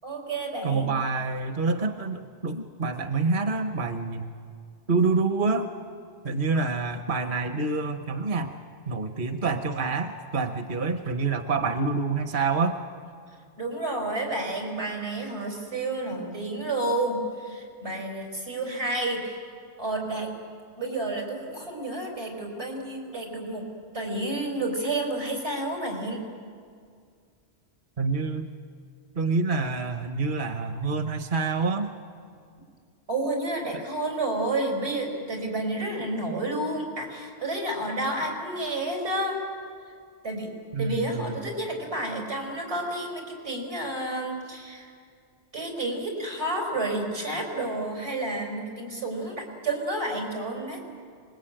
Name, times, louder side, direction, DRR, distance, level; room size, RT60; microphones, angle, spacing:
voice 1, 0.0-0.9 13.6-19.4 19.8-20.3 20.8-23.7 23.9-26.2 33.1-39.4 40.2-40.5 40.8-44.9 45.5-50.8, right 2 dB, 85° right, 0 dB, 5.5 m, -30 dB
voice 2, 0.6-4.3 4.9-5.7 6.2-8.5 8.9-12.8 28.0-28.5 29.1-31.9 33.7-33.8 40.7-41.4, right 4 dB, 50° right, 7 dB, 1.1 m, -27 dB
26.5 x 21.0 x 8.9 m, 2.2 s
omnidirectional pair, 1.1 m